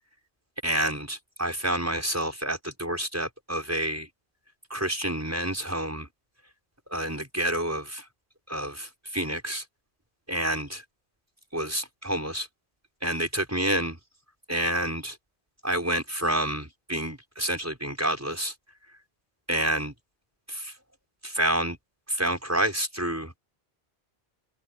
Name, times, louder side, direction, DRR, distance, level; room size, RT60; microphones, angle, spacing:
voice 1, 0.6-4.1 4.7-6.1 6.9-8.1 8.5-9.6 10.3-10.8 11.5-12.5 13.0-14.0 14.5-15.2 15.6-18.5 19.5-19.9 20.5-20.7 21.2-21.8 22.1-23.4, right 1 dB, 15° right, 5.8 m, -28 dB
open air
omnidirectional pair, 1.0 m